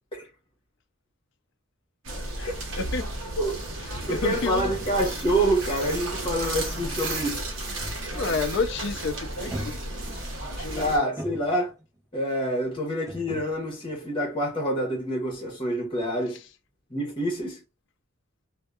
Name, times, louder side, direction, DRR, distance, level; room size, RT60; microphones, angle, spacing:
sound 1, 2.0-11.0, right 2 dB, 65° right, 0.8 m, -33 dB
voice 1, 2.4-3.1 3.8-4.7 8.1-9.9 10.5-11.3 16.3-16.5, left 4 dB, 55° left, 0.4 m, -31 dB
sound 2, 3.6-8.4 8.6-9.0 9.5-12.0 13.1-15.0 15.3-15.4, equal, 15° right, 0.4 m, -43 dB
voice 2, 4.1-7.4 8.1-8.3 10.8-11.7 12.1-16.4 16.9-17.6, right 1 dB, 25° left, 1.0 m, -27 dB
2.7 x 2.2 x 2.3 m
head